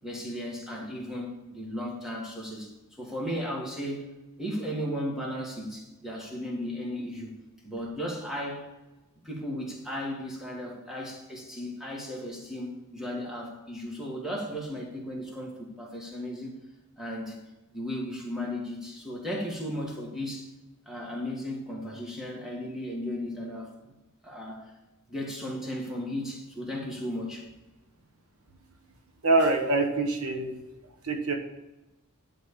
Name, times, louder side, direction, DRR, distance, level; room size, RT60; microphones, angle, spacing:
voice 1, 0.0-2.7 3.0-4.1 4.4-7.4 7.6-8.7 9.2-16.5 17.0-17.4 17.7-20.5 20.9-23.9 24.2-24.7 25.1-27.5, equal, ahead, -3 dB, 1.8 m, -35 dB
voice 2, 29.2-30.5 31.0-31.3, right 2 dB, 80° right, 4 dB, 1.2 m, -24 dB
10.5 x 4.2 x 6.7 m, 1.0 s
head